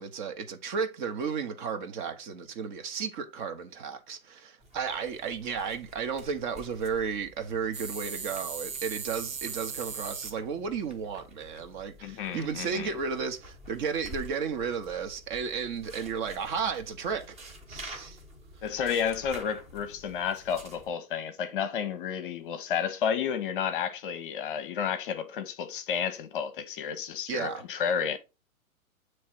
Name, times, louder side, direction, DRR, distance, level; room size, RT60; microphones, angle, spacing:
voice 1, 0.0-18.2 27.3-27.6, right 6 dB, 35° right, 1.1 m, -33 dB
sound 1, 4.6-20.9, equal, 15° right, 1.2 m, -49 dB
sound 2, 7.7-10.4 12.4-12.5 12.8-12.9 13.2-13.3 13.6-14.9 15.3-16.8 17.2-17.3 17.9-18.2 18.7-18.8, right 6 dB, 65° right, 1.4 m, -39 dB
voice 2, 12.0-12.9 18.6-28.2, left 7 dB, 40° left, 0.8 m, -31 dB
8.4 x 3.2 x 4.6 m
figure-of-eight pair, 115°, 42 cm